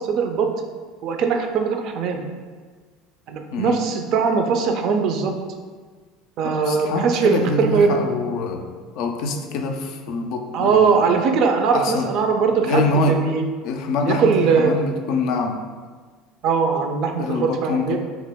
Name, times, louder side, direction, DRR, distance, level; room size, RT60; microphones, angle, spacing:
voice 1, 0.1-0.5 1.0-2.2 3.3-5.3 6.4-8.0 10.5-13.4 14.1-14.8 16.4-18.0, right 5 dB, 60° right, 4 dB, 0.4 m, -20 dB
voice 2, 6.4-8.7 9.0-11.1 11.7-12.1 12.6-13.2 13.6-15.6 17.2-18.0, left 3 dB, 65° left, 5 dB, 0.3 m, -24 dB
2.9 x 2.1 x 3.4 m, 1.5 s
hypercardioid pair, 80°, 0 cm